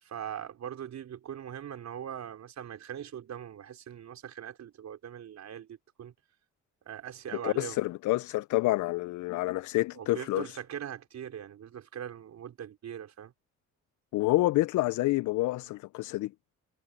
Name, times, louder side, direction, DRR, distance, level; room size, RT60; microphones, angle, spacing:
voice 1, 0.0-6.1 6.9-7.8 9.9-13.3, right 9 dB, 65° right, 4.5 m, -41 dB
voice 2, 7.4-10.6 14.1-16.3, left 18 dB, 75° left, 0.5 m, -28 dB
cardioid pair, 90°, 30 cm